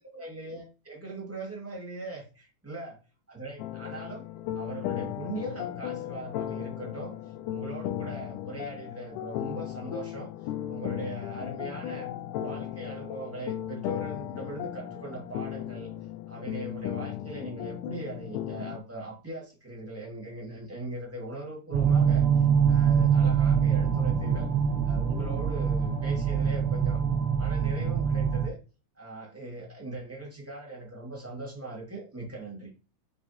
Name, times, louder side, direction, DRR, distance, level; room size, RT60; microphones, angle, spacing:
voice 1, 0.0-2.9 3.3-4.3 4.5-7.1 7.5-10.3 10.7-12.1 12.4-15.9 16.3-24.5 24.8-27.0 27.3-28.6 28.9-32.7, right 2 dB, 5° right, -2 dB, 1.3 m, -40 dB
sound 1, 3.6-18.8, left 11 dB, 80° left, 2.0 m, -36 dB
sound 2, 21.7-28.5, right 7 dB, 80° right, 1.2 m, -24 dB
6.5 x 5.2 x 2.9 m, 0.33 s
omnidirectional pair, 3.7 m